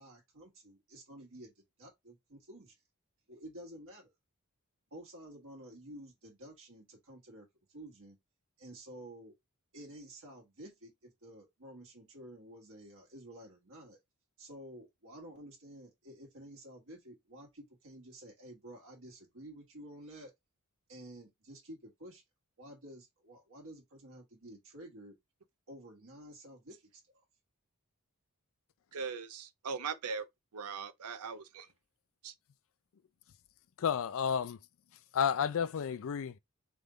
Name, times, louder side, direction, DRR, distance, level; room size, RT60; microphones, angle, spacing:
voice 1, 0.0-2.7 3.3-4.1 4.9-8.2 8.6-9.3 9.7-14.0 14.4-20.3 20.9-22.2 22.6-25.2 25.7-27.2, right 1 dB, 65° right, 1.6 m, -51 dB
voice 2, 28.9-30.3 30.5-31.7 32.2-32.3, right 5 dB, 85° right, 0.6 m, -40 dB
voice 3, 33.8-34.6 35.1-36.4, left 7 dB, 65° left, 0.4 m, -31 dB
3.6 x 3.4 x 3.8 m
head